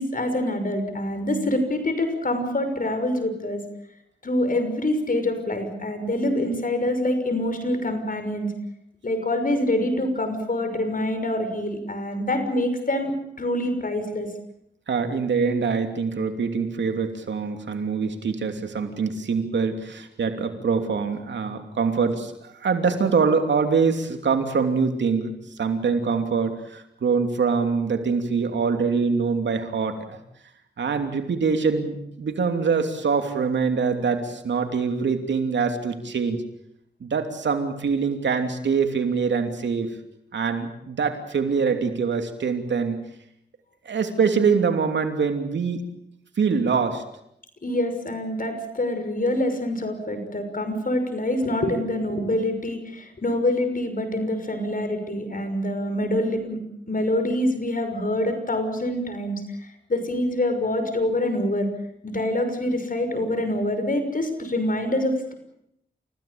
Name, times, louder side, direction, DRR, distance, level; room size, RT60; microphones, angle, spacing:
voice 1, 0.0-3.6 4.2-8.5 9.0-13.1 13.4-14.3 47.6-61.7 62.0-65.3, left 1 dB, 50° left, 7 dB, 6.4 m, -25 dB
voice 2, 14.9-30.2 30.8-36.4 37.0-39.9 40.3-43.0 43.8-45.9 46.4-47.0, right 5 dB, 85° right, 6 dB, 2.9 m, -24 dB
29.0 x 16.5 x 8.7 m, 0.77 s
cardioid pair, 55°, 18 cm